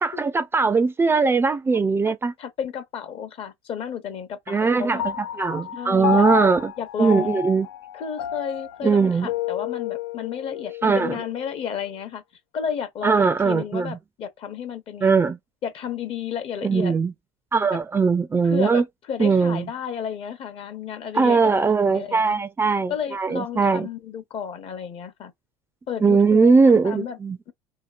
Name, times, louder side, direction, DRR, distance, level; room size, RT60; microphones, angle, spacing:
voice 1, 0.0-2.3 4.5-6.7 7.0-7.7 8.8-9.3 10.8-11.2 13.0-14.0 15.0-15.4 16.6-17.1 17.5-18.8 19.2-19.7 21.1-23.9 26.0-27.4, right 4 dB, 20° right, 0.4 m, -20 dB
voice 2, 2.4-5.0 5.8-6.3 6.8-7.4 7.9-12.2 12.5-15.2 15.6-16.9 17.7-17.8 18.4-18.8 19.1-21.6 21.9-22.3 22.9-25.3 25.9-27.2, left 8 dB, 50° left, 0.9 m, -32 dB
Piano, 5.0-11.7, left 12 dB, 85° left, 0.4 m, -31 dB
2.9 x 2.9 x 2.4 m
supercardioid pair, 90°, 12 cm